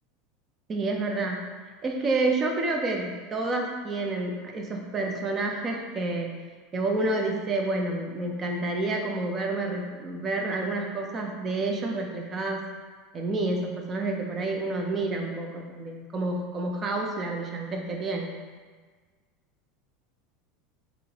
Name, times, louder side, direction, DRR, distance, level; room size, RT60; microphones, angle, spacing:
voice 1, 0.7-1.5 1.8-6.3 6.7-12.6 13.1-18.3, right 2 dB, 30° right, 1 dB, 0.5 m, -29 dB
3.5 x 2.5 x 2.9 m, 1.5 s
hypercardioid pair, 90°, 0 cm